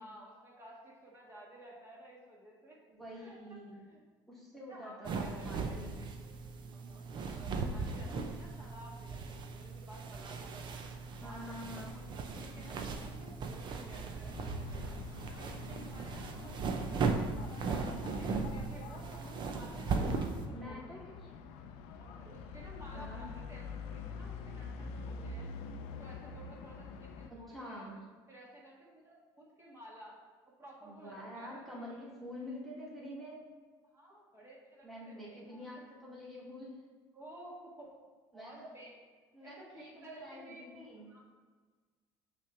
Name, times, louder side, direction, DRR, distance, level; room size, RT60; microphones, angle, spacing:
voice 1, 0.0-2.8 3.1-4.0 4.7-6.3 6.7-10.8 11.2-12.0 12.3-15.0 15.4-17.1 17.5-21.0 22.0-25.5 25.9-27.9 28.3-30.2 30.6-31.9 33.8-35.7 37.1-38.0 38.3-38.9 39.4-40.6 41.1-41.2, right 1 dB, 25° right, -4 dB, 1.8 m, -54 dB
voice 2, 2.9-3.8 4.3-6.0 11.2-11.9 12.5-12.8 20.5-21.3 22.9-23.3 27.3-28.0 30.8-33.4 34.8-36.9 38.3-38.7 39.3-41.0, equal, ahead, -6 dB, 1.7 m, -47 dB
sound 1, 5.0-20.5, right 4 dB, 45° right, 0.7 m, -38 dB
sound 2, 14.3-27.3, left 5 dB, 80° left, 0.5 m, -46 dB
6.2 x 3.3 x 5.8 m, 1.5 s
supercardioid pair, 105°, 11 cm